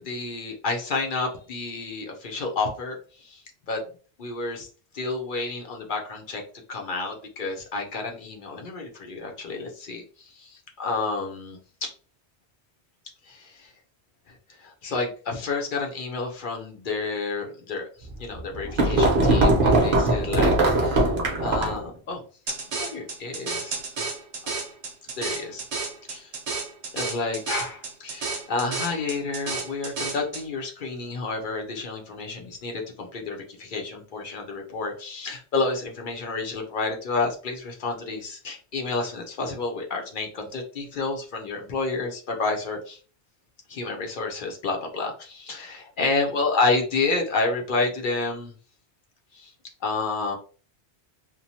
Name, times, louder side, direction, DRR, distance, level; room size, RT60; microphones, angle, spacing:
voice 1, 0.0-3.8 4.2-4.7 4.9-6.4 6.7-11.9 13.3-13.7 14.6-21.1 21.4-22.2 22.5-23.7 25.1-25.6 26.1-26.3 26.9-43.0 43.7-48.5 49.3-49.5 49.8-50.3, left 3 dB, 55° left, 2 dB, 0.7 m, -30 dB
sound 1, 18.1-21.9, right 2 dB, 55° right, 0.9 m, -20 dB
sound 2, 22.5-30.4, right 4 dB, 75° right, 1.1 m, -32 dB
3.0 x 2.1 x 2.7 m, 0.38 s
omnidirectional pair, 1.2 m